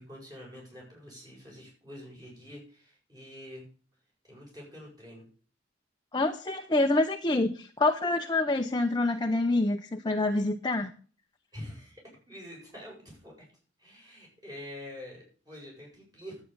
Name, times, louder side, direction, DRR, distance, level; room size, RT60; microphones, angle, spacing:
voice 1, 0.0-3.7 4.2-5.2 11.5-13.5 13.8-16.4, left 1 dB, 20° right, -3 dB, 7.9 m, -46 dB
voice 2, 6.1-10.9, left 2 dB, 25° left, 4 dB, 0.8 m, -26 dB
11.0 x 9.2 x 6.9 m, 0.41 s
head